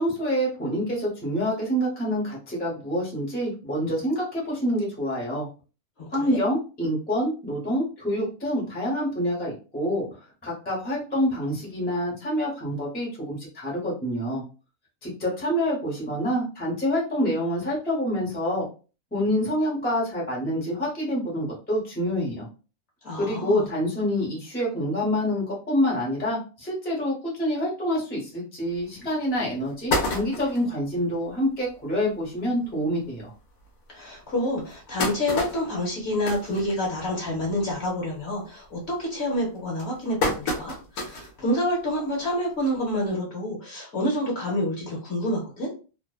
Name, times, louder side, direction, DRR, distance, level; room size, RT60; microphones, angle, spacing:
voice 1, 0.0-5.5 6.1-10.0 10.4-14.4 15.0-18.6 19.1-22.5 23.1-33.3, equal, 10° left, -4 dB, 0.7 m, -27 dB
voice 2, 6.0-6.4 23.0-23.7 33.9-45.7, left 1 dB, 50° left, -3 dB, 1.1 m, -28 dB
sound 1, 28.8-28.9 29.3-29.4 29.7-30.7 31.3-31.4 31.7-31.8 32.1-32.3 33.0-33.1 33.6-33.7 34.4-37.3 37.6-38.0 38.3-38.7 39.3-41.4 41.8-41.9 43.1-43.2, left 2 dB, 75° left, 1.0 m, -29 dB
2.6 x 2.1 x 2.2 m, 0.35 s
omnidirectional pair, 1.5 m